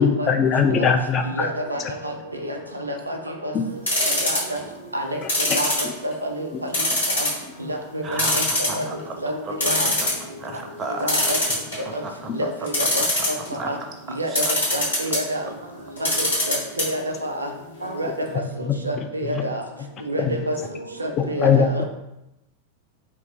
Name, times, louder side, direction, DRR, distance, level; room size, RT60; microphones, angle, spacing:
voice 1, 0.0-1.5 3.5-3.6 5.5-5.6 18.7-18.8 19.3-19.4 20.3-20.4 21.2-21.8, left 6 dB, 30° left, 6 dB, 0.3 m, -20 dB
voice 2, 1.3-2.1 2.5-2.6 2.9-3.2 3.4-3.5 4.1-4.6 4.9-5.2 5.5-5.7 6.0-6.5 7.2-7.3 7.6-8.4 8.8-8.9 9.2-9.3 9.6-9.9 11.0-11.4 11.9-12.0 12.4-13.0 13.7-13.8 14.2-14.3 14.7-15.4 16.0-17.5 17.8-18.1 18.8-19.6 20.1-20.5 21.0-21.8, equal, 80° right, 3 dB, 0.4 m, -28 dB
sound 1, 3.9-4.6 5.3-6.3 6.7-7.4 7.8-7.9 8.2-9.0 9.3-9.4 9.6-10.2 11.1-12.0 12.7-13.5 14.4-15.2 16.0-16.8 17.1-17.2 17.5-17.6, left 1 dB, 75° left, 1.2 m, -22 dB
voice 3, 8.0-9.2 9.4-9.7 10.4-11.6 12.0-12.1 13.5-13.8 14.1-14.5, right 2 dB, 25° right, 3 dB, 0.5 m, -33 dB
2.9 x 2.2 x 3.8 m, 0.89 s
figure-of-eight pair, 90°, 0 cm